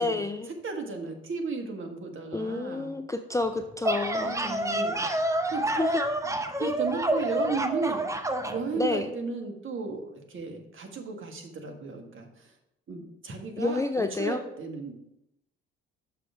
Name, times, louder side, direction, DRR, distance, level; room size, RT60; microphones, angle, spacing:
voice 1, 0.0-0.5 2.3-5.4 5.8-5.9 6.6-6.7 8.8-9.1 13.6-14.4, left 3 dB, 10° left, 7 dB, 0.4 m, -30 dB
voice 2, 0.6-2.9 4.1-5.1 5.5-5.6 6.6-8.0 8.5-12.5 12.9-14.9, right 4 dB, 40° right, 3 dB, 1.6 m, -34 dB
sound 1, 3.6-8.6, right 1 dB, 10° right, 0.8 m, -28 dB
6.0 x 5.9 x 4.8 m, 0.84 s
hypercardioid pair, 50°, 30 cm